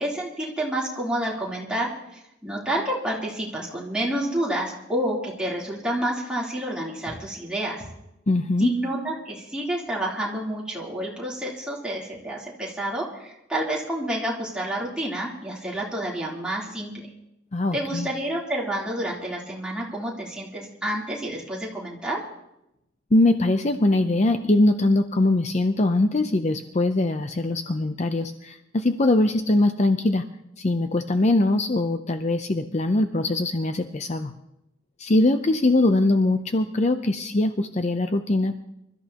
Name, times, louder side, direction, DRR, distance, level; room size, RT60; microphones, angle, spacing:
voice 1, 0.0-7.9 8.6-16.9 17.7-22.2, right 1 dB, 5° right, -5 dB, 3.4 m, -29 dB
voice 2, 8.3-8.7 17.5-18.1 23.1-30.2 30.6-34.3 35.0-38.6, left 2 dB, 35° left, 8 dB, 0.6 m, -22 dB
26.5 x 13.5 x 2.9 m, 0.87 s
head